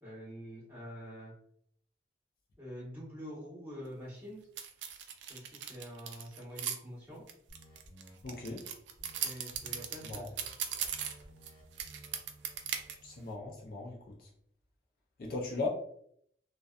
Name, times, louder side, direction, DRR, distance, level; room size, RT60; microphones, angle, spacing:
voice 1, 0.0-1.3 2.6-4.4 5.3-7.2 9.2-10.3, equal, 15° right, -7 dB, 1.1 m, -46 dB
sound 1, 4.6-6.7 7.3-11.5 11.8-12.9, right 8 dB, 80° right, 0.3 m, -38 dB
sound 2, 7.5-8.5 9.0-9.3 9.5-9.8 10.1-13.4, right 1 dB, 25° left, 1.4 m, -56 dB
voice 2, 8.2-8.6 10.0-10.3 13.0-14.3 15.2-15.7, left 3 dB, 50° left, -1 dB, 0.4 m, -38 dB
2.5 x 2.2 x 2.3 m, 0.67 s
head